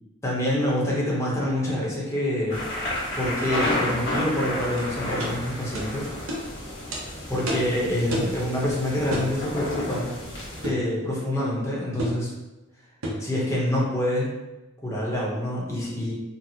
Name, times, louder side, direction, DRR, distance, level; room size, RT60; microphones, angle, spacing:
voice 1, 0.2-2.6 3.2-6.1 7.3-10.1 10.6-12.3 13.2-14.3 14.8-16.1, left 1 dB, 15° left, -6 dB, 0.8 m, -26 dB
sound 1, 2.5-10.7, left 1 dB, 55° left, 1.3 m, -31 dB
sound 2, 4.8-4.9 5.2-5.3 5.7-5.9 6.3-6.4 6.9-7.0 7.5-7.7 8.1-8.4 9.1-9.3 10.6-10.9 12.0-12.2 13.0-13.3, equal, 75° right, 0.7 m, -29 dB
4.0 x 2.0 x 2.7 m, 1.0 s
head